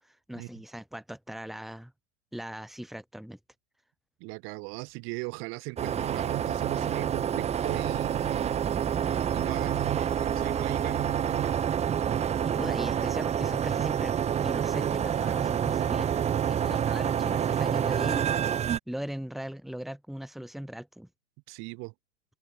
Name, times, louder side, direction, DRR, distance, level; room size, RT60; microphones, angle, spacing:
voice 1, 0.0-1.9 2.3-3.4 12.4-18.3 18.9-21.1, equal, ahead, 3.5 m, -39 dB
voice 2, 4.2-8.6 9.3-11.7 21.5-21.9, right 30 dB, 35° right, 3.2 m, -37 dB
sound 1, 5.8-18.8, right 9 dB, 15° right, 3.3 m, -28 dB
open air
figure-of-eight pair, 105°, 37 cm